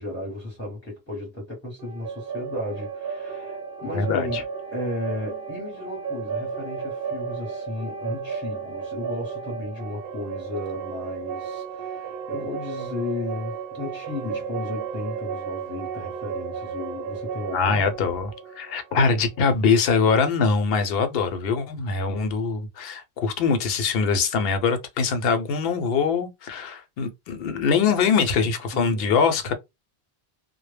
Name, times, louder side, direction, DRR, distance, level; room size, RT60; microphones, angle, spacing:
voice 1, 0.0-4.4 4.7-17.8 28.7-29.2, left 2 dB, 15° left, 0.8 m, -34 dB
sound 1, 1.8-19.6, right 6 dB, 70° right, 0.8 m, -34 dB
voice 2, 3.9-4.4 17.5-29.5, left 5 dB, 70° left, 0.8 m, -23 dB
2.1 x 2.0 x 3.2 m
omnidirectional pair, 1.1 m